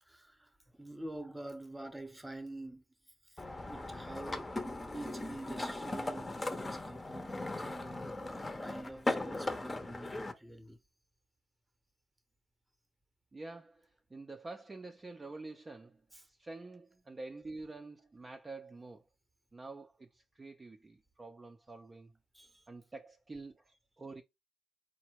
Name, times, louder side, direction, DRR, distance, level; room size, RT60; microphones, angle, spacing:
voice 1, 0.0-2.8 3.2-4.6 4.9-8.2 8.6-10.8 16.1-16.3 22.3-22.6, right 1 dB, 10° right, 0.9 m, -47 dB
sound 1, 3.4-10.3, left 2 dB, 20° left, 0.8 m, -38 dB
voice 2, 13.3-16.0 16.3-19.0 19.5-22.1 22.7-24.2, right 3 dB, 25° right, 0.6 m, -48 dB
4.1 x 2.2 x 4.5 m
cardioid pair, 90°, 0 cm